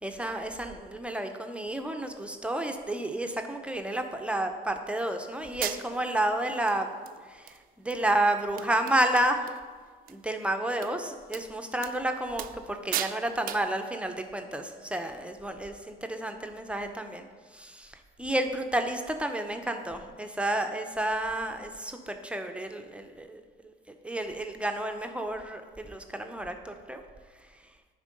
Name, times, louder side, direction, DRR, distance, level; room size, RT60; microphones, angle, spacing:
voice 1, 0.0-6.9 7.2-7.6 7.9-9.5 10.1-17.3 17.5-23.7 24.0-27.0, right 1 dB, 5° right, 5 dB, 0.6 m, -31 dB
sound 1, 5.1-5.2 5.6-6.1 6.7-6.8 7.1-7.6 7.9-8.0 8.3-8.4 8.6-9.6 9.9-10.1 10.8-10.9 11.3-11.4 11.8-12.0 12.4-12.7 12.9-13.2 13.5-13.7, right 11 dB, 55° right, 0.4 m, -35 dB
10.0 x 3.7 x 5.2 m, 1.5 s
cardioid pair, 110°, 17 cm